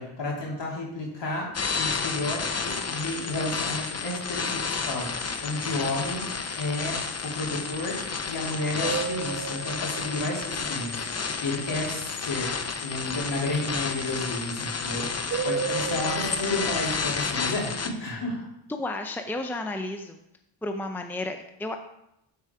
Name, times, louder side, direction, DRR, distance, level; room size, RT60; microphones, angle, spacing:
voice 1, 0.0-1.5 1.8-6.3 6.6-7.0 7.2-12.5 12.8-17.7 18.0-18.5, left 2 dB, 60° left, -3 dB, 3.5 m, -32 dB
sound 1, 1.5-17.9, left 5 dB, 30° left, 0.9 m, -31 dB
sound 2, 8.8-11.2 15.3-16.9, right 6 dB, 35° right, 0.4 m, -33 dB
voice 2, 18.8-20.2 20.6-21.8, left 2 dB, 5° left, 5 dB, 0.7 m, -32 dB
12.5 x 4.8 x 4.7 m, 0.83 s
cardioid pair, 75°, 48 cm